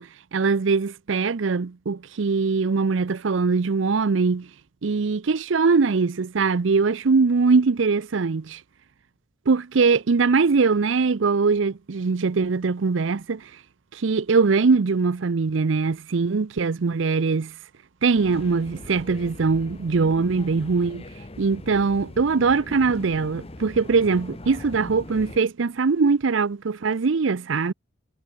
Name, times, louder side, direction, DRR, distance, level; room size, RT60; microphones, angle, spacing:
voice 1, 0.0-4.5 4.8-8.6 9.5-13.5 13.9-17.5 18.0-21.0 21.4-27.7, right 4 dB, 70° right, 0.6 m, -22 dB
sound 1, 18.1-25.4, left 1 dB, 30° left, 1.1 m, -41 dB
head